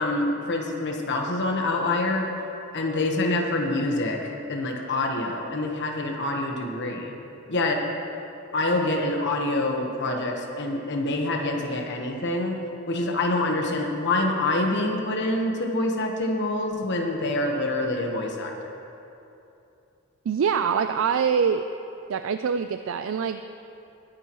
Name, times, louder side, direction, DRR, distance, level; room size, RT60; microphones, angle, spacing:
voice 1, 0.0-2.3 2.7-7.1 7.5-7.8 8.5-12.6 12.9-18.7, left 2 dB, 55° left, 1 dB, 1.2 m, -26 dB
voice 2, 20.3-21.7 22.1-23.4, right 6 dB, 65° right, 9 dB, 0.4 m, -24 dB
21.0 x 10.0 x 3.1 m, 2.8 s
head